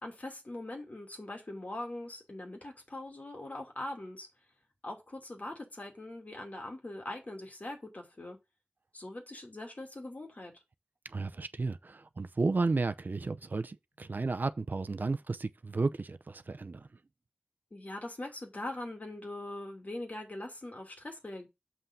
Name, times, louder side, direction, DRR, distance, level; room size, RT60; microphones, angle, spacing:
voice 1, 0.0-4.3 4.8-8.4 8.9-10.6 17.7-21.5, left 1 dB, 50° left, 2.7 m, -42 dB
voice 2, 11.0-16.9, right 3 dB, 65° right, 0.6 m, -33 dB
7.3 x 5.7 x 3.8 m
wide cardioid pair, 60°, 3 cm